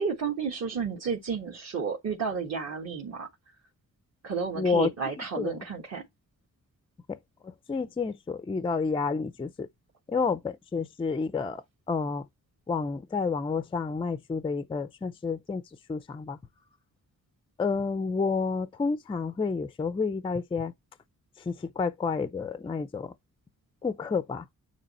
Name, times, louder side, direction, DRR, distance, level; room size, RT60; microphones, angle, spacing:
voice 1, 0.0-3.3 4.2-6.0, right 5 dB, 55° right, 1.6 m, -32 dB
voice 2, 4.6-4.9 5.4-5.5 7.7-9.7 10.1-11.6 11.9-12.2 12.7-15.6 15.9-16.4 17.6-20.7 21.5-23.1 23.8-24.5, left 4 dB, 15° left, 0.4 m, -29 dB
9.4 x 3.2 x 4.2 m
wide cardioid pair, 165°, 32 cm